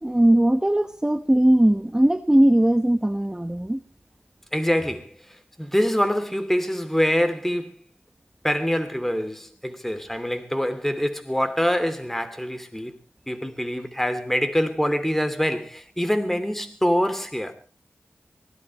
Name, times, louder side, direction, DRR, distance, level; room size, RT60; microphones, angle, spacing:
voice 1, 0.0-3.8, right 1 dB, 15° right, 1.1 m, -19 dB
voice 2, 4.5-7.8 8.4-13.0 13.3-17.5, equal, 5° left, 2.9 m, -25 dB
24.5 x 18.0 x 3.1 m
cardioid pair, 50°, 4 cm